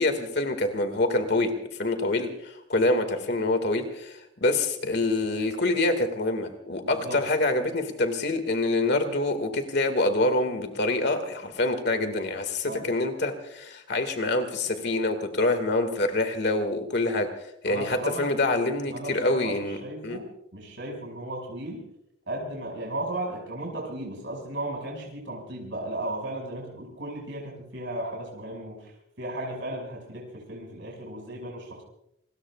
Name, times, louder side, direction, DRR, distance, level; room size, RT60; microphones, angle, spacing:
voice 1, 0.0-17.3 17.6-20.2, left 2 dB, 55° left, 7 dB, 2.1 m, -26 dB
voice 2, 6.8-7.2 12.7-12.9 17.7-18.3 18.9-20.3 20.5-21.8 22.3-28.9 29.2-31.8, right 1 dB, 65° right, -1 dB, 6.0 m, -35 dB
27.5 x 21.0 x 2.4 m, 0.77 s
head